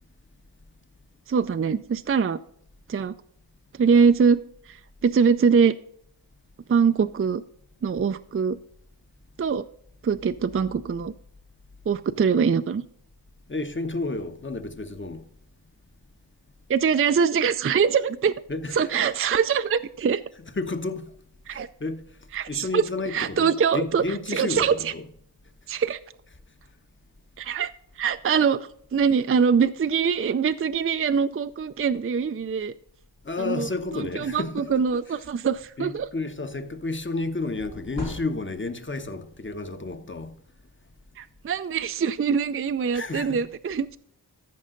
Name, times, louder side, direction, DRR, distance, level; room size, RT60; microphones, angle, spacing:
voice 1, 1.3-2.4 2.9-3.1 3.8-4.4 4.7-4.8 5.0-5.7 6.7-7.4 7.8-8.6 9.4-9.6 10.0-11.1 11.9-12.8 16.7-18.3 18.7-20.2 21.5-21.7 22.3-22.8 23.1-24.0 24.3-24.9 25.7-26.0 27.4-27.7 28.0-32.7 33.4-33.7 34.2-36.1 41.2-44.0, right 6 dB, 35° right, 0.4 m, -23 dB
voice 2, 13.5-15.3 18.5-18.9 20.4-21.1 21.5-22.1 22.5-25.1 33.2-35.2 35.8-40.4 42.9-43.5, left 3 dB, 30° left, 0.9 m, -31 dB
sound 1, 33.9-34.0 34.4-34.5 34.8-35.9 37.6-38.8, left 2 dB, 75° left, 2.5 m, -40 dB
14.0 x 5.4 x 3.8 m
wide cardioid pair, 50°, 41 cm